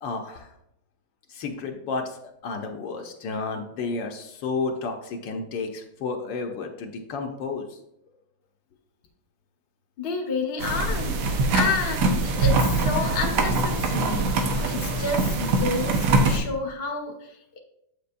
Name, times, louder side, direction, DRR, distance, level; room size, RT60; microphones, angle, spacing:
voice 1, 0.0-0.5 1.3-7.8, left 4 dB, 70° left, 3 dB, 1.3 m, -32 dB
voice 2, 10.0-17.6, left 3 dB, 45° left, 2 dB, 0.8 m, -30 dB
sound 1, 10.6-16.4, right 2 dB, 80° right, 1.6 m, -23 dB
7.5 x 6.7 x 2.5 m, 0.80 s
omnidirectional pair, 2.2 m